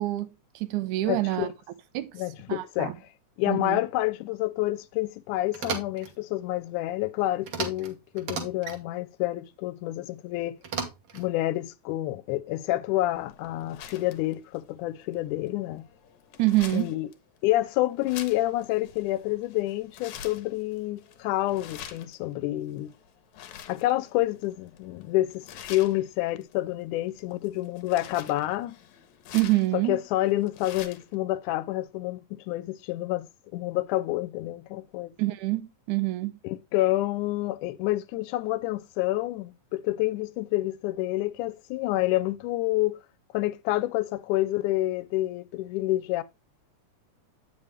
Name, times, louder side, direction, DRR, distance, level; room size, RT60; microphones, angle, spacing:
voice 1, 0.0-1.5 1.9-2.2 2.5-2.9 3.5-3.8 16.4-16.9 29.3-30.0 35.2-36.4, right 18 dB, 85° right, 2.2 m, -26 dB
voice 2, 1.0-1.5 2.1-2.9 3.4-10.6 11.1-15.9 16.7-17.1 17.4-22.9 23.7-28.8 29.9-33.3 33.5-35.1 36.4-43.0 43.3-46.2, left 16 dB, 90° left, 2.1 m, -28 dB
sound 1, 5.5-6.1 7.5-7.9 8.2-8.8 10.6-11.3, right 6 dB, 55° right, 2.0 m, -34 dB
sound 2, 13.1-31.2, left 9 dB, 75° left, 2.1 m, -47 dB
8.2 x 5.5 x 3.2 m
omnidirectional pair, 3.5 m